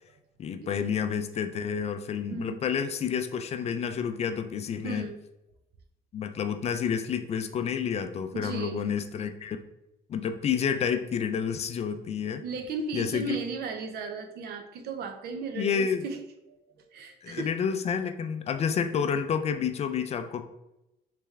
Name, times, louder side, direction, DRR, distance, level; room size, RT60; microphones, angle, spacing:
voice 1, 0.4-5.1 6.1-9.6 10.1-12.4 12.9-13.4 15.5-16.0 17.2-20.4, left 7 dB, 40° left, 8 dB, 0.4 m, -29 dB
voice 2, 2.3-2.6 4.8-5.2 8.3-8.8 12.4-16.2 16.9-17.5, right 4 dB, 70° right, 6 dB, 0.6 m, -35 dB
3.4 x 3.3 x 3.2 m, 0.92 s
cardioid pair, 110°, 17 cm